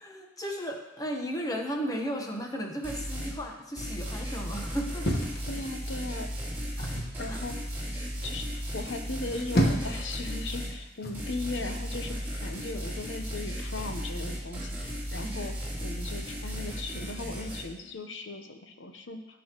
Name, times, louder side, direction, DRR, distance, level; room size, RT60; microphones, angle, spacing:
voice 1, 0.0-5.2 6.8-6.9 7.3-7.4 15.1-15.3, equal, 20° left, 2 dB, 1.1 m, -35 dB
sound 1, 2.8-3.4 3.8-10.8 11.1-17.6, equal, 10° right, 3.2 m, -35 dB
sound 2, 5.0-6.1 6.8-7.2 9.2-10.1 11.0-11.3, equal, 55° left, 1.4 m, -29 dB
voice 2, 5.4-6.3 7.2-7.6 8.2-12.2 12.4-15.5 15.8-19.4, left 2 dB, 85° left, 6 dB, 0.9 m, -38 dB
17.0 x 6.2 x 3.0 m, 0.97 s
head